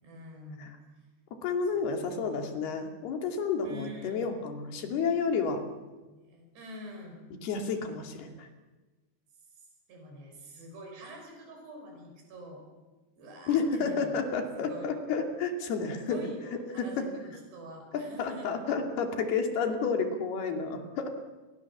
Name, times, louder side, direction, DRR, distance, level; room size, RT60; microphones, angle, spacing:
voice 1, 0.0-0.7 1.9-2.5 3.6-4.4 6.0-7.5 9.9-12.6 13.2-14.2 14.6-14.9 15.9-18.5, equal, 70° right, 2 dB, 8.0 m, -46 dB
voice 2, 1.4-5.6 7.4-8.5 13.5-17.1 17.9-21.1, left 5 dB, 65° left, 4 dB, 4.2 m, -31 dB
30.0 x 23.5 x 7.2 m, 1.2 s
omnidirectional pair, 5.1 m